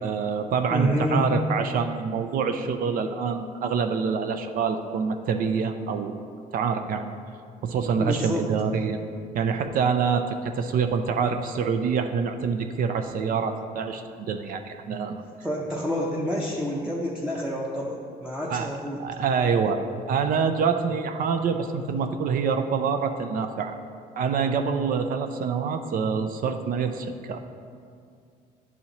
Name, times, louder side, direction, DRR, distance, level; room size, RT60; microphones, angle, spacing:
voice 1, 0.0-6.1 6.5-7.1 7.6-9.0 9.3-15.2 18.5-18.7 19.0-19.8 20.1-23.7 24.2-27.4, right 6 dB, 55° right, 7 dB, 0.4 m, -26 dB
voice 2, 0.7-1.3 8.0-8.4 15.4-19.0, equal, 5° right, -3 dB, 0.6 m, -28 dB
10.5 x 4.1 x 2.9 m, 2.3 s
cardioid pair, 110°, 17 cm